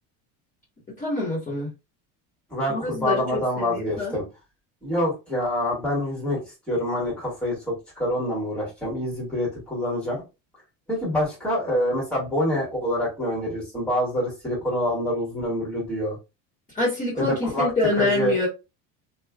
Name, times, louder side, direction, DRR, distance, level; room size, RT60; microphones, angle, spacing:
voice 1, 1.0-1.7 2.7-3.2 3.6-4.1 16.7-18.5, left 2 dB, 20° left, -7 dB, 1.4 m, -25 dB
voice 2, 2.5-4.2 4.8-10.2 10.9-16.2 17.2-17.7 18.0-18.4, left 1 dB, 5° left, -5 dB, 1.8 m, -26 dB
3.1 x 2.7 x 2.4 m, 0.27 s
cardioid pair, 140°, 38 cm